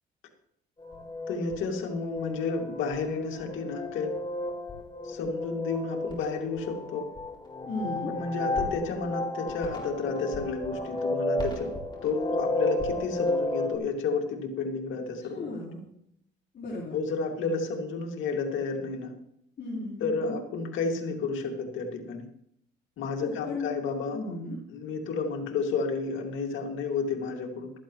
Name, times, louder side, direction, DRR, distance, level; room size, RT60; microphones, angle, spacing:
sound 1, 0.8-13.8, left 2 dB, 25° left, 3.9 m, -33 dB
voice 1, 1.3-4.1 5.0-7.1 8.1-11.7 12.0-15.6 16.9-19.1 20.0-22.3 23.0-24.4 24.7-27.7, left 4 dB, 80° left, 2 dB, 2.3 m, -31 dB
voice 2, 7.7-8.1 15.3-15.8 16.5-16.9 19.6-20.4 23.2-23.8 24.1-24.6, left 2 dB, 50° left, -7 dB, 4.4 m, -35 dB
14.5 x 13.5 x 3.1 m, 0.73 s
cardioid pair, 90°, 20 cm